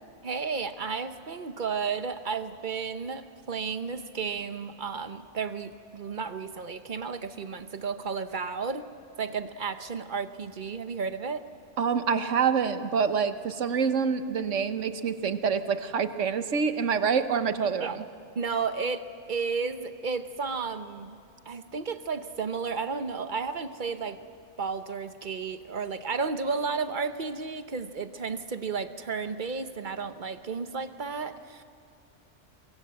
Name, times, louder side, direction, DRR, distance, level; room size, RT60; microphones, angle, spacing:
voice 1, 0.2-8.8 9.2-11.4 17.8-17.9 18.3-21.2 21.5-24.2 24.6-31.6, right 5 dB, 45° right, 10 dB, 1.1 m, -33 dB
voice 2, 11.8-18.0, right 6 dB, 85° right, 10 dB, 1.4 m, -26 dB
23.5 x 23.0 x 7.7 m, 2.3 s
omnidirectional pair, 1.2 m